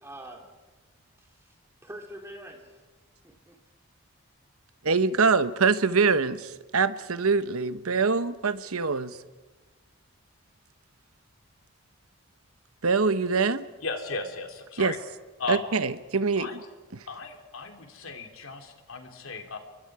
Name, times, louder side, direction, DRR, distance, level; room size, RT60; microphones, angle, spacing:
voice 1, 0.0-0.5 1.2-1.6 1.8-2.8 3.2-3.6, right 1 dB, 10° right, 3.3 m, -44 dB
voice 2, 4.8-9.1 12.8-13.7 14.8-14.9 15.5-16.5, right 4 dB, 85° right, 1.0 m, -24 dB
voice 3, 13.8-15.0 15.4-15.7 16.4-16.6 17.1-19.6, left 3 dB, 75° left, 3.1 m, -36 dB
29.5 x 23.5 x 4.9 m
head